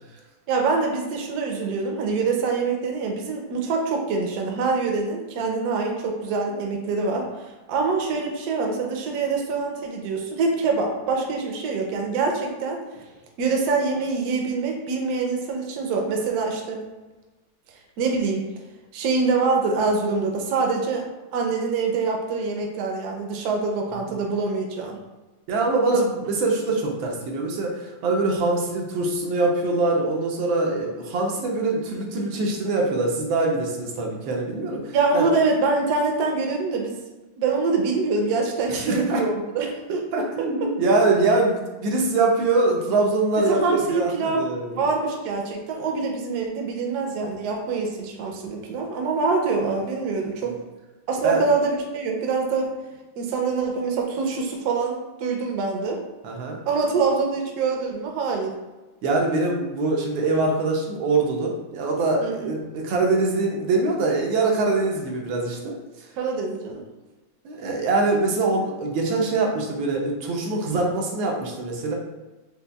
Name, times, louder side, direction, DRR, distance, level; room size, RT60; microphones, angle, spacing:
voice 1, 0.5-7.3 7.7-12.8 13.4-16.8 18.0-18.5 18.9-21.0 21.3-25.0 25.9-26.0 34.9-37.0 37.4-40.0 40.4-40.7 43.4-50.5 51.1-52.7 53.2-56.0 56.7-58.5 62.2-62.5 66.2-66.8, right 4 dB, 70° right, 1 dB, 1.0 m, -25 dB
voice 2, 25.5-35.3 38.7-39.2 40.1-44.8 50.4-50.5 51.2-51.5 56.2-56.6 59.0-65.7 67.4-71.9, right 3 dB, 90° right, 0 dB, 1.4 m, -23 dB
5.2 x 2.2 x 2.2 m, 1.2 s
omnidirectional pair, 2.1 m